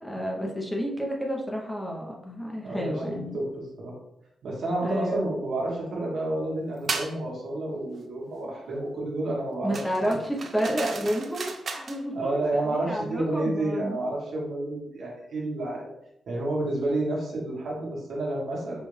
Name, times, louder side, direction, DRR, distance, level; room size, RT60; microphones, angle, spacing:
voice 1, 0.0-3.4 4.8-5.3 9.6-14.0, equal, 5° left, -1 dB, 0.9 m, -30 dB
voice 2, 2.6-4.0 4.4-10.1 12.1-15.9 16.3-18.8, right 2 dB, 75° right, -3 dB, 1.5 m, -30 dB
sound 1, 6.9-7.2 9.7-12.0, right 4 dB, 55° right, 0.5 m, -34 dB
5.5 x 2.5 x 3.3 m, 0.81 s
cardioid pair, 105°, 0 cm